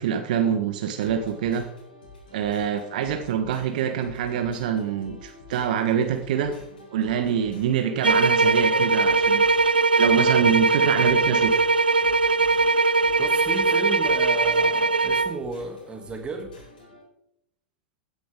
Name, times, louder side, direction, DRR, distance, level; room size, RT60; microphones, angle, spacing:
voice 1, 0.0-1.7 2.3-6.5 6.9-9.4 10.0-11.5, right 8 dB, 60° right, 6 dB, 1.3 m, -25 dB
sound 1, 1.0-17.0, left 2 dB, 70° left, 5.7 m, -47 dB
sound 2, 8.0-15.4, right 3 dB, 90° right, 0.3 m, -20 dB
voice 2, 13.2-16.7, right 3 dB, 20° right, 4 dB, 2.7 m, -34 dB
16.0 x 10.0 x 3.8 m, 0.81 s
figure-of-eight pair, 90°, 5 cm